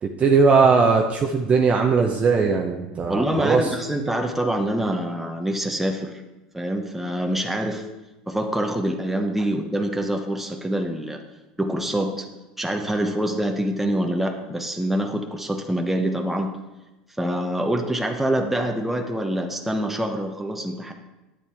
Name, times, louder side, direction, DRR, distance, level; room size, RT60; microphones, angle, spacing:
voice 1, 0.0-3.7, right 4 dB, 35° right, 2 dB, 0.8 m, -19 dB
voice 2, 3.1-6.1 6.5-7.8 8.3-11.2 11.6-12.3 12.6-16.6 17.2-20.9, right 1 dB, 5° right, 3 dB, 1.0 m, -25 dB
9.6 x 8.7 x 3.5 m, 1.1 s
hypercardioid pair, 85°, 4 cm